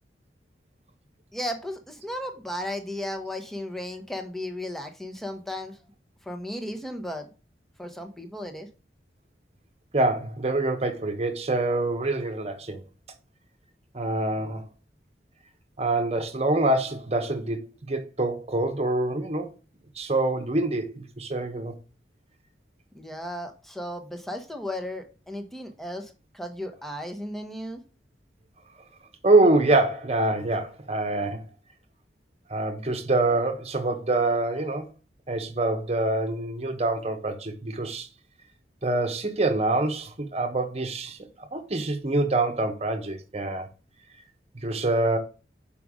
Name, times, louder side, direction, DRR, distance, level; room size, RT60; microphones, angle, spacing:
voice 1, 1.3-5.8 6.2-7.3 7.8-8.7 22.9-27.8, left 1 dB, ahead, 0.9 m, -35 dB
voice 2, 9.9-12.8 13.9-14.6 15.8-19.5 20.0-21.7 29.2-31.4 32.5-34.9 35.3-38.1 38.8-43.7 44.6-45.2, right 2 dB, 35° right, 1.0 m, -25 dB
6.6 x 5.1 x 3.6 m
head